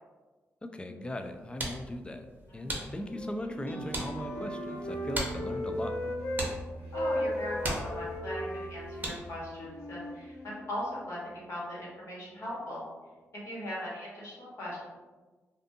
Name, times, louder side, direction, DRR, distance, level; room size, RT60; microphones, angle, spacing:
voice 1, 0.6-2.3 2.5-5.9, left 1 dB, 20° left, 6 dB, 0.3 m, -38 dB
sound 1, 1.2-9.5, right 1 dB, 30° right, 0.7 m, -40 dB
Wind instrument woodwind instrument, 3.1-6.5 6.8-10.7, left 1 dB, 80° left, 0.6 m, -37 dB
sound 2, 3.4-10.6, right 2 dB, 35° left, 1.0 m, -44 dB
voice 2, 6.9-12.8 13.4-14.8, left 1 dB, 60° left, -6 dB, 1.2 m, -39 dB
2.4 x 2.4 x 2.6 m, 1.3 s
cardioid pair, 60°, 6 cm